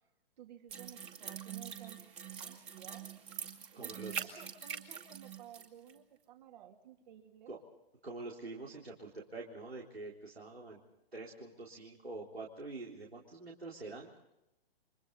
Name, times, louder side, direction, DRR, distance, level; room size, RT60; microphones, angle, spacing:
voice 1, 0.4-2.0 2.4-3.1 3.7-7.5, right 10 dB, 45° right, 4 dB, 3.0 m, -55 dB
sound 1, 0.7-5.6 5.9-6.0, right 7 dB, 20° right, 2.4 m, -44 dB
voice 2, 3.7-4.4 7.5-7.6 8.0-10.8 11.1-14.2, right 3 dB, 85° right, -3 dB, 4.0 m, -46 dB
30.0 x 25.0 x 4.0 m, 0.87 s
figure-of-eight pair, 120°, 30 cm